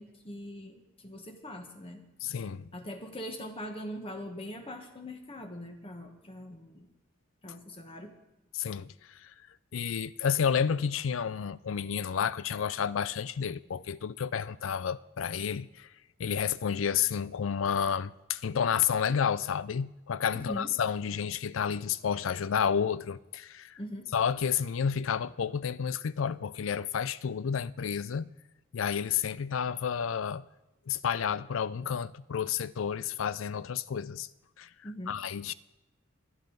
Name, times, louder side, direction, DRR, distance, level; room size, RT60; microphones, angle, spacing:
voice 1, 0.0-2.0 2.7-6.9 7.4-8.1 20.3-20.7 23.8-24.1 34.8-35.2, equal, 30° left, 1.3 m, -42 dB
voice 2, 2.2-2.7 8.5-9.3 9.7-15.9 16.2-23.8 24.1-28.3 28.7-30.4 30.9-34.3 34.6-34.7 35.1-35.5, left 7 dB, 85° left, 0.4 m, -30 dB
25.0 x 8.8 x 3.9 m
head